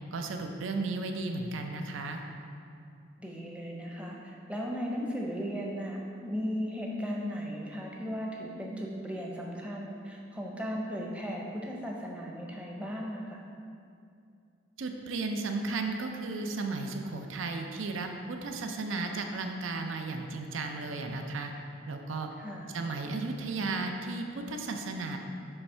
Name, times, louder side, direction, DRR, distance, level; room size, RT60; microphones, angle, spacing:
voice 1, 0.1-2.2 14.8-21.5 21.9-22.3 22.7-25.2, right 3 dB, 80° right, 4 dB, 0.5 m, -34 dB
voice 2, 3.2-13.4 22.4-22.7, equal, 5° right, -2 dB, 0.6 m, -36 dB
7.0 x 3.2 x 5.5 m, 2.5 s
head